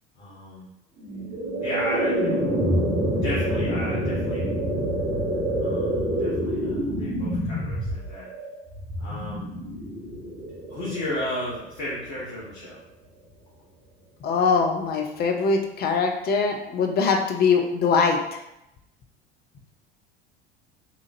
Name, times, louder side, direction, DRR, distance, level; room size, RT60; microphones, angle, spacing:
voice 1, 0.1-0.7 1.6-2.7 3.0-4.5 5.6-8.3 9.0-9.5 10.7-12.8, left 1 dB, 55° left, -9 dB, 1.3 m, -34 dB
sound 1, 1.0-12.1, equal, 35° right, 1.2 m, -27 dB
voice 2, 14.2-18.4, left 5 dB, 30° left, 3 dB, 0.4 m, -22 dB
3.6 x 3.0 x 2.5 m, 0.86 s
figure-of-eight pair, 70°, 32 cm